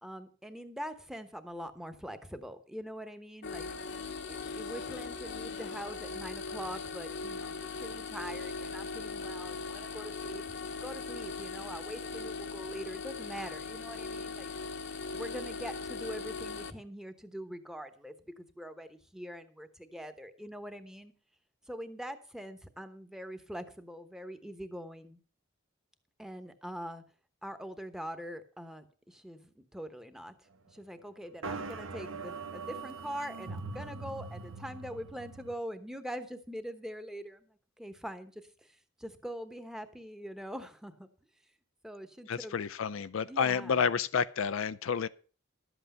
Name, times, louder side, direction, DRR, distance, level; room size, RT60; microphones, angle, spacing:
voice 1, 0.0-3.7 4.3-14.5 15.1-21.1 21.7-25.2 26.2-27.0 27.4-30.4 30.7-41.1 41.8-42.5 43.3-43.8, equal, 5° right, 1.0 m, -43 dB
sound 1, 3.4-16.7, left 4 dB, 60° left, 0.9 m, -39 dB
sound 2, 31.4-35.5, right 4 dB, 85° right, 1.1 m, -41 dB
voice 2, 42.3-45.1, left 6 dB, 75° left, 0.4 m, -30 dB
12.0 x 8.1 x 5.5 m
head